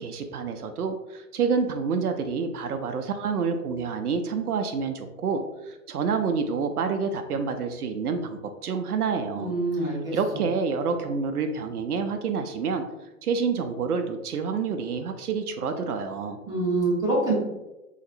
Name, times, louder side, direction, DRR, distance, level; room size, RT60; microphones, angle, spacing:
voice 1, 0.0-9.6 9.8-12.8 13.2-16.4, right 5 dB, 90° right, 6 dB, 0.5 m, -28 dB
voice 2, 9.3-10.2 16.5-17.3, right 2 dB, 10° right, -7 dB, 1.0 m, -25 dB
4.0 x 2.9 x 2.5 m, 1.0 s
hypercardioid pair, 130°, 44 cm